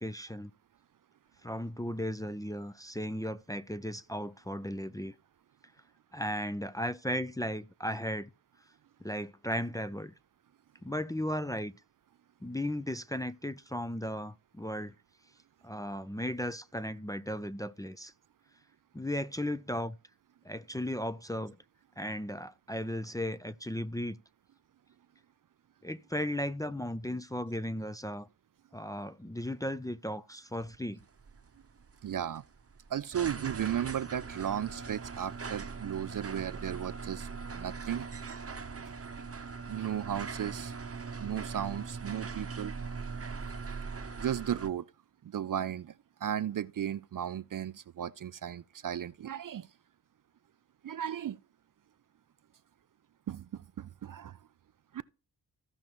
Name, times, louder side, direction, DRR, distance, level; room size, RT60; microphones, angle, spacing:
voice 1, 0.0-0.5 1.4-5.1 6.1-8.3 9.0-10.1 10.8-11.7 12.4-14.9 15.6-18.1 18.9-20.0 20.4-21.6 22.0-24.2 25.8-28.3 28.7-31.0, equal, 10° left, 0.5 m, -36 dB
sound 1, 31.0-44.7, right 5 dB, 30° right, 0.9 m, -41 dB
voice 2, 32.0-32.4 32.9-37.3 37.5-38.1 38.9-39.0 39.7-40.7 41.2-42.7 44.2-44.9 45.2-45.9 46.2-49.7 50.8-51.4 53.3-54.4, right 10 dB, 50° right, 0.5 m, -35 dB
15.5 x 5.4 x 3.0 m
cardioid pair, 65°, 43 cm